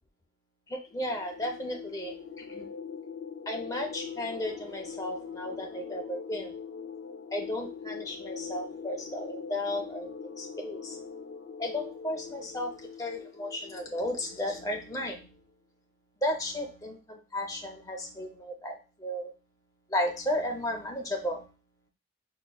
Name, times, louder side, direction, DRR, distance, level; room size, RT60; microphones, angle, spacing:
voice 1, 0.7-2.7 3.5-6.5 7.3-11.0 11.6-15.4 16.2-19.3 19.9-21.5, left 1 dB, 20° left, 2 dB, 0.6 m, -34 dB
sound 1, 0.9-15.2, left 6 dB, 75° left, 0.5 m, -42 dB
5.3 x 2.2 x 2.3 m, 0.32 s
head